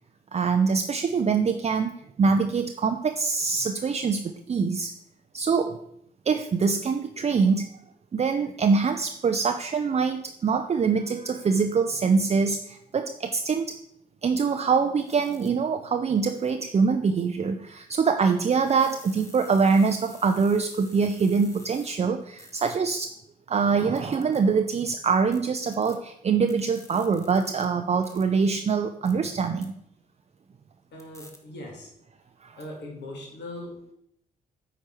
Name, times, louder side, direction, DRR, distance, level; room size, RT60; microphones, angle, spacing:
voice 1, 0.3-1.9 2.2-4.9 5.3-5.8 6.3-7.7 8.1-13.8 14.2-23.1 23.5-29.7 32.4-32.6, right 5 dB, 30° right, 7 dB, 0.5 m, -24 dB
sound 1, 15.0-15.5 16.3-16.5 18.5-22.0 22.4-22.8 23.9-24.4 25.3-26.0 26.5-27.7 28.0-28.2 29.1-29.2 29.6-29.7 31.0-31.4, left 1 dB, 15° left, 1.4 m, -50 dB
voice 2, 30.9-31.9 32.6-33.9, left 1 dB, 60° left, 0 dB, 1.9 m, -40 dB
8.8 x 4.6 x 4.5 m, 0.73 s
hypercardioid pair, 40°, 20 cm